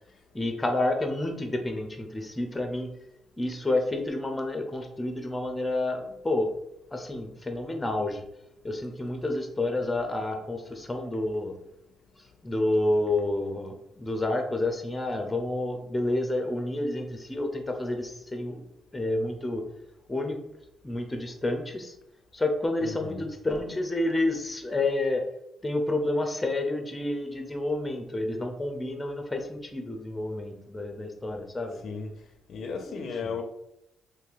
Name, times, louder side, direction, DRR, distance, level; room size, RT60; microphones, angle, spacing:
voice 1, 0.3-3.0 3.4-6.5 6.9-8.2 8.6-11.5 12.4-18.6 18.9-19.6 20.1-20.4 20.8-21.9 22.3-25.2 25.6-31.8 32.8-33.3, left 2 dB, 15° left, 4 dB, 0.6 m, -29 dB
voice 2, 22.8-23.3 31.8-32.1 32.5-33.4, left 5 dB, 65° left, 4 dB, 0.5 m, -35 dB
2.8 x 2.6 x 3.9 m, 0.79 s
cardioid pair, 90°, 0 cm